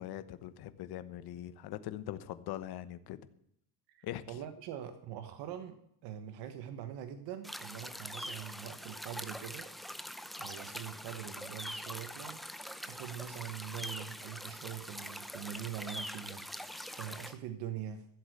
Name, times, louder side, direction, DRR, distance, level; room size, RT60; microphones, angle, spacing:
voice 1, 0.0-3.2 4.0-4.4, left 12 dB, 65° left, 12 dB, 1.1 m, -42 dB
voice 2, 3.9-9.7 10.4-12.4 12.8-18.1, right 10 dB, 80° right, 8 dB, 1.3 m, -43 dB
sound 1, 7.4-17.3, equal, ahead, 0.6 m, -43 dB
15.0 x 8.1 x 6.6 m, 0.73 s
cardioid pair, 125°, 41 cm